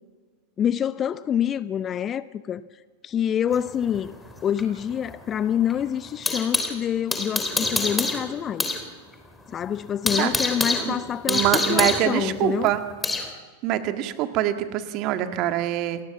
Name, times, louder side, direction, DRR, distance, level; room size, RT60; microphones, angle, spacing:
voice 1, 0.6-2.7 3.0-8.7 9.5-12.7, left 9 dB, 25° left, 0.7 m, -26 dB
sound 1, 3.5-6.8 7.1-8.8 9.1-9.2 9.6-13.3, left 2 dB, 10° left, 3.5 m, -27 dB
voice 2, 11.3-12.8 13.6-16.0, right 12 dB, 40° right, 1.8 m, -24 dB
28.5 x 20.5 x 7.3 m
figure-of-eight pair, 90°, 0 cm